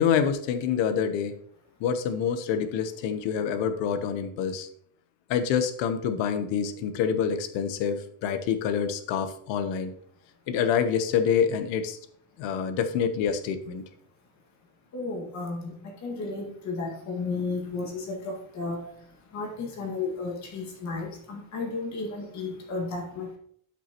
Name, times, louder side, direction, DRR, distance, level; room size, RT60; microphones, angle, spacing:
voice 1, 0.0-1.3 1.8-4.7 5.3-9.9 10.5-12.0 12.4-13.8, left 7 dB, 60° left, 1.1 m, -26 dB
voice 2, 14.9-18.9 19.3-23.4, left 3 dB, 35° left, 2.0 m, -33 dB
12.5 x 6.0 x 3.0 m
cardioid pair, 180°, 49 cm